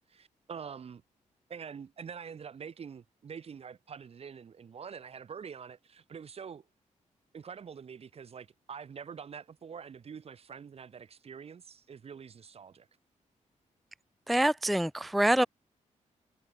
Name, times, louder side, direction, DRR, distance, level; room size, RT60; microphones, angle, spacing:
voice 1, 0.1-1.0 1.5-6.7 7.3-12.9, right 6 dB, 50° right, 1.9 m, -45 dB
voice 2, 14.3-15.5, right 1 dB, ahead, 0.4 m, -25 dB
cardioid pair, 105°, 13 cm